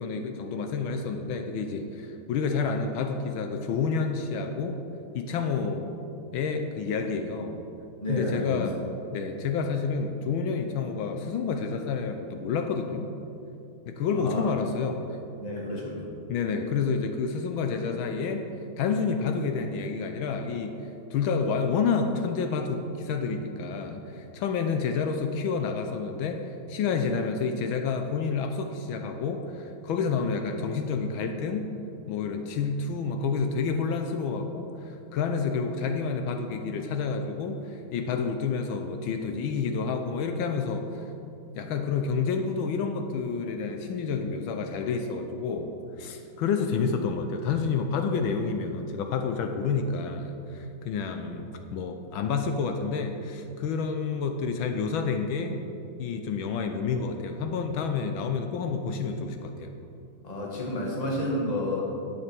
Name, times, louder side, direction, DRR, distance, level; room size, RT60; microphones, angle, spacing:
voice 1, 0.0-4.8 5.1-5.9 6.3-7.6 8.1-8.8 9.1-13.1 13.9-15.0 16.3-18.4 18.8-20.7 21.1-31.7 32.1-41.0 41.6-45.7 46.0-55.6 56.0-59.7, left 5 dB, 80° left, 5 dB, 1.4 m, -29 dB
voice 2, 8.0-8.7 14.1-14.4 15.4-16.1 60.2-61.8, left 1 dB, 20° left, -2 dB, 1.5 m, -30 dB
9.6 x 8.6 x 4.4 m, 2.7 s
omnidirectional pair, 2.2 m